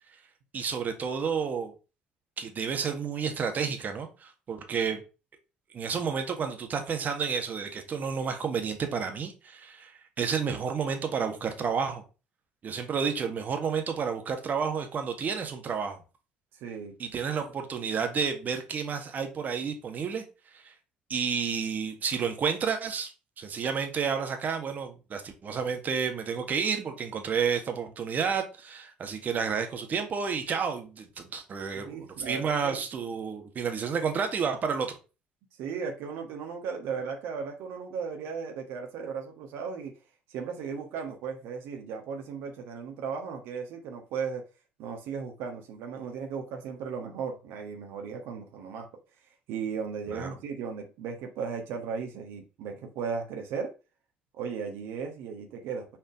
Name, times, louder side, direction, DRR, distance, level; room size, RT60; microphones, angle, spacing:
voice 1, 0.5-1.7 2.4-5.0 5.7-9.9 10.2-12.0 12.6-16.0 17.0-20.2 20.5-20.7 21.1-23.1 23.4-34.9 50.1-50.3, right 6 dB, 40° right, 1.6 m, -30 dB
voice 2, 16.6-17.0 31.7-32.8 35.6-39.9 40.3-44.4 44.8-48.9 49.5-53.7 54.4-55.9, right 6 dB, 60° right, 1.4 m, -36 dB
6.0 x 4.3 x 5.1 m
figure-of-eight pair, 55°, 4 cm